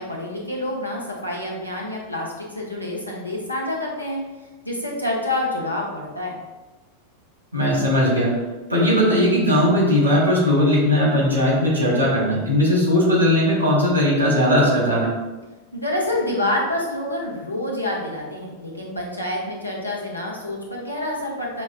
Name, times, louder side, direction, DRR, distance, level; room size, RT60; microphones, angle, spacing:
voice 1, 0.0-4.2 4.6-6.4 15.7-21.6, left 1 dB, 85° left, -2 dB, 0.8 m, -27 dB
voice 2, 7.5-8.3 8.7-15.1, left 1 dB, 85° right, -4 dB, 1.3 m, -18 dB
6.1 x 2.2 x 2.4 m, 1.2 s
figure-of-eight pair, 90°, 0 cm